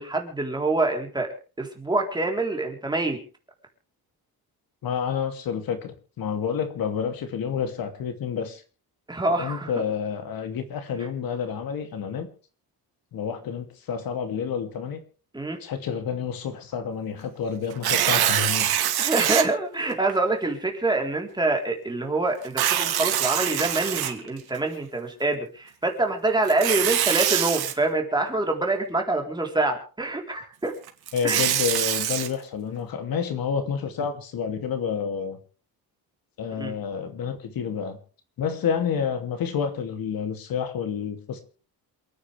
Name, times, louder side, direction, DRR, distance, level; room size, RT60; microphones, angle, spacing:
voice 1, 0.0-3.2 9.1-9.7 15.3-15.6 19.0-30.7 31.2-31.4 36.6-36.7, right 2 dB, 10° right, 2 dB, 3.8 m, -26 dB
voice 2, 4.8-8.6 9.3-12.3 13.1-15.0 15.6-18.8 31.1-35.4 36.4-38.0 38.4-41.4, left 7 dB, 65° left, 7 dB, 2.7 m, -29 dB
Tearing, 17.7-19.4 20.1-20.2 22.4-24.6 26.4-27.7 30.9-32.3, right 11 dB, 75° right, 2.7 m, -24 dB
28.0 x 9.8 x 3.4 m, 0.37 s
cardioid pair, 150°, 38 cm